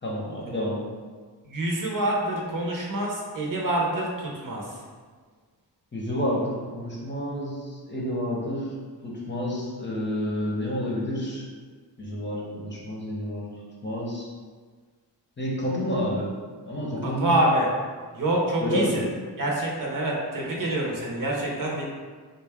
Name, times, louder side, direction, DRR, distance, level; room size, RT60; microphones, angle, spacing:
voice 1, 0.0-0.8 5.9-8.7 9.0-11.4 12.0-13.5 13.8-14.3 15.4-16.3 16.7-17.3 18.6-19.0, equal, 25° left, -4 dB, 0.8 m, -29 dB
voice 2, 1.5-4.6 17.0-17.7 18.1-18.8 19.4-21.8, right 1 dB, 50° right, -3 dB, 0.8 m, -26 dB
3.7 x 2.2 x 3.4 m, 1.5 s
cardioid pair, 80°, 43 cm